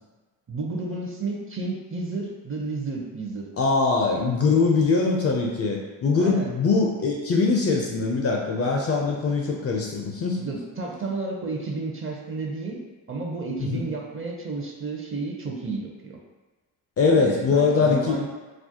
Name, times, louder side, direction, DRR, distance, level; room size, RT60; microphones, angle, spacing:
voice 1, 0.5-3.4 6.2-6.5 10.4-12.8 13.1-16.2 17.2-18.3, right 3 dB, 30° right, -1 dB, 0.5 m, -32 dB
voice 2, 3.6-10.4 13.6-13.9 17.0-18.2, left 4 dB, 35° left, -1 dB, 0.4 m, -22 dB
2.4 x 2.0 x 2.7 m, 1.2 s
hypercardioid pair, 55°, 46 cm